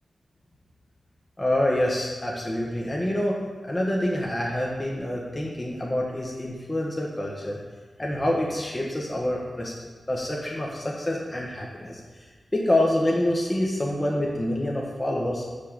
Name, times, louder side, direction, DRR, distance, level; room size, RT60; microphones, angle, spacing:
voice 1, 1.4-7.6 8.0-15.4, left 1 dB, 25° left, -3 dB, 1.4 m, -27 dB
5.7 x 5.6 x 6.8 m, 1.4 s
cardioid pair, 60°, 0 cm